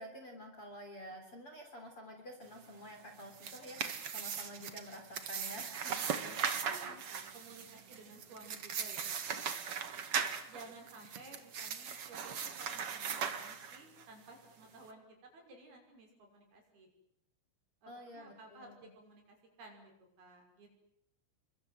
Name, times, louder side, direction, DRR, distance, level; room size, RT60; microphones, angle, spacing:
voice 1, 0.0-6.1 17.9-18.9, equal, 30° left, 3 dB, 3.6 m, -50 dB
sound 1, 3.1-14.0, right 7 dB, 80° right, 1.3 m, -39 dB
voice 2, 6.0-9.4 10.5-16.9 17.8-19.9 20.2-20.7, right 2 dB, 50° right, 3 dB, 7.5 m, -55 dB
29.5 x 23.5 x 7.9 m, 0.74 s
omnidirectional pair, 5.9 m